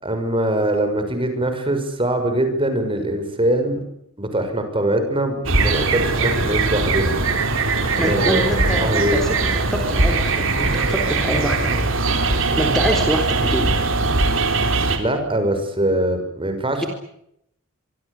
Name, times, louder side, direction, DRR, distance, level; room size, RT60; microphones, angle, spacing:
voice 1, 0.0-3.8 4.2-7.1 8.0-9.2 15.0-16.9, right 1 dB, 25° right, 7 dB, 6.4 m, -22 dB
sound 1, 5.4-15.0, right 3 dB, 65° right, 4.3 m, -20 dB
voice 2, 8.0-11.8 12.6-13.7, equal, ahead, 4 dB, 3.7 m, -25 dB
25.5 x 24.5 x 8.4 m, 0.75 s
head